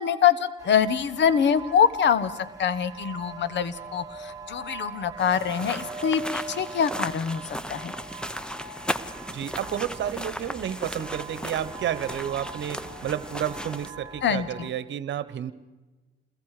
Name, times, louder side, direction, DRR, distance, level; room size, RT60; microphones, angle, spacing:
voice 1, 0.0-7.4 7.7-7.9 14.2-14.5, left 8 dB, 65° left, 15 dB, 1.3 m, -24 dB
sound 1, 0.6-14.7, right 4 dB, 15° right, 2.6 m, -42 dB
sound 2, 5.2-13.9, equal, 5° left, 1.0 m, -36 dB
voice 2, 9.3-15.5, right 10 dB, 65° right, 15 dB, 1.2 m, -31 dB
28.5 x 21.5 x 5.0 m, 1.2 s
cardioid pair, 90°, 20 cm